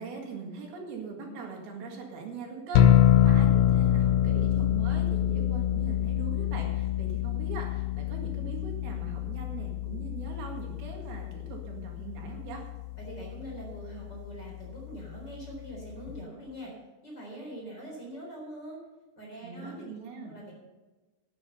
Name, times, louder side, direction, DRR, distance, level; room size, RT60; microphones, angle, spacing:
voice 1, 0.0-12.6 19.4-20.3, right 4 dB, 75° right, 1 dB, 3.8 m, -41 dB
sound 1, 2.7-16.2, left 11 dB, 75° left, 2.1 m, -27 dB
voice 2, 13.0-16.7 17.0-18.8 19.2-19.9 20.2-20.5, right 1 dB, 25° left, -2 dB, 4.3 m, -43 dB
12.0 x 10.5 x 5.6 m, 1.2 s
omnidirectional pair, 4.5 m